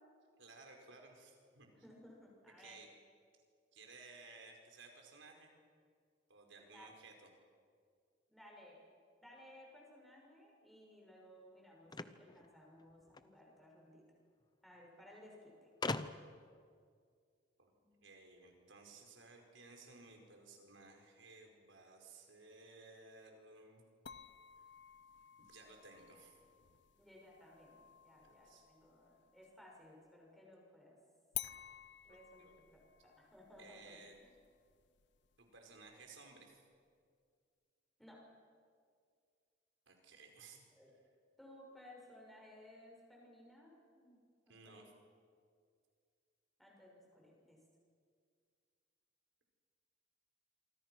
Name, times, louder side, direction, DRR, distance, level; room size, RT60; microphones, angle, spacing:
voice 1, 0.4-1.7 2.6-2.9 3.7-5.5 6.3-7.3 17.6-17.7 18.0-23.8 25.4-26.4 28.2-28.7 32.1-32.5 33.6-34.2 35.4-36.6 39.9-40.6 44.5-44.9, right 3 dB, 75° right, 2 dB, 5.0 m, -58 dB
voice 2, 1.7-2.8 6.7-6.9 8.3-8.8 9.2-14.0 14.6-15.7 17.8-18.1 27.0-31.0 32.0-34.3 38.0-38.2 40.8-40.9 41.4-44.9 46.6-47.6, left 1 dB, ahead, -2 dB, 6.6 m, -59 dB
sound 1, 11.9-13.3 14.4-14.5 14.7-14.8 15.8-16.5, left 3 dB, 20° left, 0.7 m, -41 dB
sound 2, 24.1-29.6 31.3-36.3, left 13 dB, 60° left, 0.6 m, -53 dB
27.5 x 24.5 x 6.2 m, 2.1 s
head